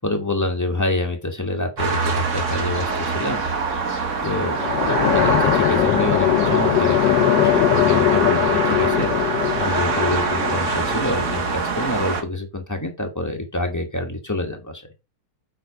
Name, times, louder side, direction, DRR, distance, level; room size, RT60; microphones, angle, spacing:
voice 1, 0.0-3.5 4.2-14.8, left 1 dB, 10° left, 3 dB, 1.3 m, -27 dB
sound 1, 1.8-12.2, right 4 dB, 45° right, 1.5 m, -24 dB
sound 2, 4.2-11.4, left 13 dB, 80° left, 1.2 m, -21 dB
7.7 x 5.0 x 4.8 m, 0.27 s
omnidirectional pair, 1.9 m